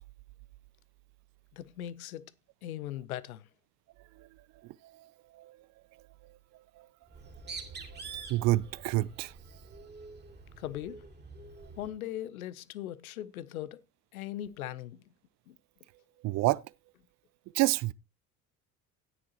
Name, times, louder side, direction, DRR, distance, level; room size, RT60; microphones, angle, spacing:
voice 1, 1.5-2.3 2.6-3.5 10.6-11.0 11.8-13.8 14.1-15.1 15.5-15.6, left 12 dB, 80° left, 0.7 m, -39 dB
voice 2, 4.8-5.6 6.8-6.9 7.9-8.0 8.3-9.3 16.2-16.6 17.5-17.9, right 18 dB, 40° right, 0.5 m, -29 dB
Bird, 7.1-11.9, right 4 dB, 25° right, 2.7 m, -46 dB
13.5 x 9.8 x 2.9 m
figure-of-eight pair, 60°, 43 cm